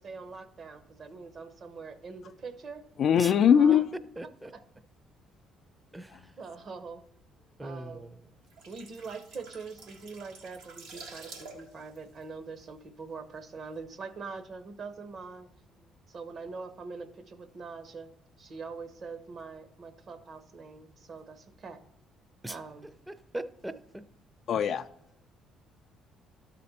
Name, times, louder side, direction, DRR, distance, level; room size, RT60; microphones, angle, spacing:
voice 1, 0.0-2.8 3.5-3.9 4.5-4.6 5.9-6.0 6.4-7.0 7.6-8.0 8.7-15.5 16.1-18.1 18.4-21.8 22.5-22.9, right 4 dB, 50° right, 10 dB, 0.9 m, -43 dB
voice 2, 3.0-3.8 24.5-24.8, left 8 dB, 60° left, 12 dB, 0.3 m, -21 dB
voice 3, 4.2-4.5 5.9-6.4 7.6-8.2 22.4-23.8 24.5-24.6, right 1 dB, 10° right, 13 dB, 0.6 m, -40 dB
sound 1, 8.3-13.2 13.5-13.7, right 3 dB, 90° right, 1.5 m, -49 dB
12.0 x 4.3 x 4.2 m, 0.76 s
supercardioid pair, 65°, 0 cm